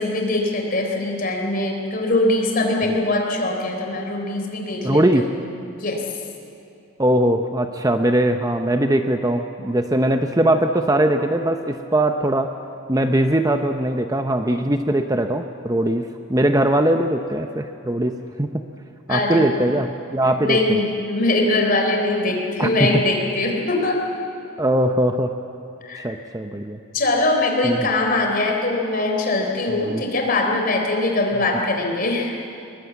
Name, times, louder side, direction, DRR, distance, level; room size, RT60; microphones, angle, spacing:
voice 1, 0.0-5.4 5.7-6.0 19.1-19.7 20.4-24.0 25.8-26.1 26.9-32.3, left 2 dB, 40° left, 2 dB, 3.7 m, -22 dB
voice 2, 4.8-5.3 7.0-12.5 12.9-18.6 19.1-20.8 22.6-22.9 24.6-25.3 26.0-26.8 27.6-27.9 29.9-30.0, right 1 dB, 15° right, 6 dB, 0.7 m, -20 dB
22.0 x 21.5 x 8.2 m, 2.7 s
head